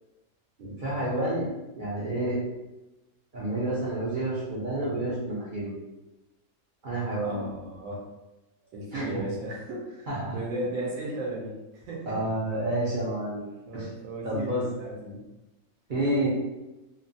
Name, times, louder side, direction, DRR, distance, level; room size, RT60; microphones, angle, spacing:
voice 1, 0.6-1.5 1.8-2.4 3.3-5.7 6.8-7.4 8.9-9.1 10.1-10.4 12.1-13.4 13.7-13.9 14.2-14.6 15.9-16.3, right 1 dB, 50° right, -8 dB, 0.6 m, -29 dB
voice 2, 7.2-8.0 8.6-10.1 10.3-12.2 13.7-15.2, right 1 dB, 75° right, -3 dB, 1.0 m, -35 dB
3.0 x 2.0 x 2.5 m, 1.0 s
omnidirectional pair, 1.5 m